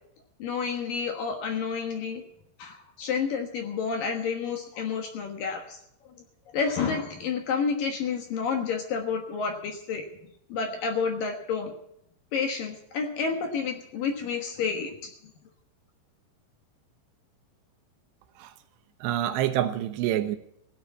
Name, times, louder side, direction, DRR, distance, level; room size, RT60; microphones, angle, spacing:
voice 1, 0.4-2.2 2.6-5.8 6.5-10.1 10.5-11.7 12.3-15.1, left 5 dB, 60° left, 4 dB, 2.5 m, -30 dB
voice 2, 19.0-20.4, right 12 dB, 80° right, 9 dB, 2.8 m, -27 dB
16.5 x 8.0 x 9.3 m, 0.74 s
omnidirectional pair, 5.3 m